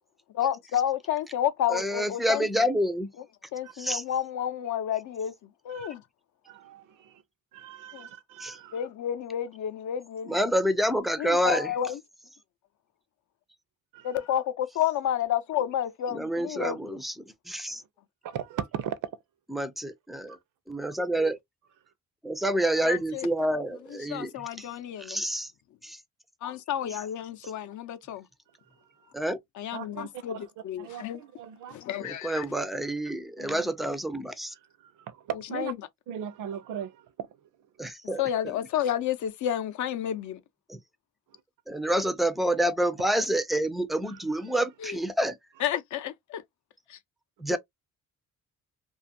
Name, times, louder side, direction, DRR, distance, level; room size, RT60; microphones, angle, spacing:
voice 1, 0.3-2.6 3.5-5.3 5.6-6.0 7.9-8.1 8.7-10.4 11.2-12.0 14.0-17.0 22.8-23.3 24.1-25.2 26.4-28.3 29.6-31.2 31.7-32.5 33.4-33.6 35.5-35.7 38.2-40.4 44.8-45.0 45.6-46.4 47.5-47.6, left 10 dB, 65° left, 0.5 m, -30 dB
voice 2, 1.7-3.1 3.8-4.0 8.4-8.6 10.3-11.7 16.1-17.1 17.5-17.8 19.5-20.4 20.7-21.4 22.3-24.7 25.0-25.5 25.8-26.0 29.1-29.4 32.0-34.5 37.8-38.5 40.7-40.8 41.7-45.3 47.4-47.6, right 1 dB, ahead, 0.3 m, -28 dB
voice 3, 6.5-7.2 7.5-8.8 13.9-14.1 18.2-19.1 20.3-20.4 29.0-29.1 29.7-31.8 34.5-35.7 36.1-37.4 41.3-41.4 44.0-44.5, right 9 dB, 75° right, 0.5 m, -39 dB
2.5 x 2.3 x 2.6 m
cardioid pair, 120°, 32 cm